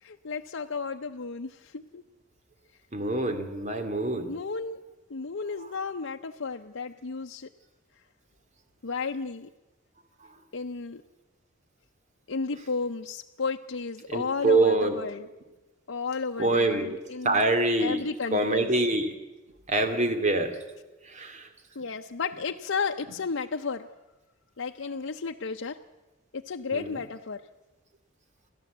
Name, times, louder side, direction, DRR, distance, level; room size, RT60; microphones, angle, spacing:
voice 1, 0.0-2.0 4.3-4.8 5.1-7.5 8.8-9.5 10.5-11.0 12.3-15.3 15.9-17.5 17.8-18.7 21.7-23.9 24.6-25.8 26.3-27.4, left 4 dB, 75° left, 4 dB, 0.7 m, -33 dB
voice 2, 2.9-4.3 14.1-15.0 16.4-17.0 17.2-18.0 18.3-19.1 19.7-20.5 21.0-21.5 26.7-27.0, right 2 dB, 35° right, 7 dB, 2.5 m, -25 dB
29.5 x 12.5 x 8.0 m, 1.1 s
head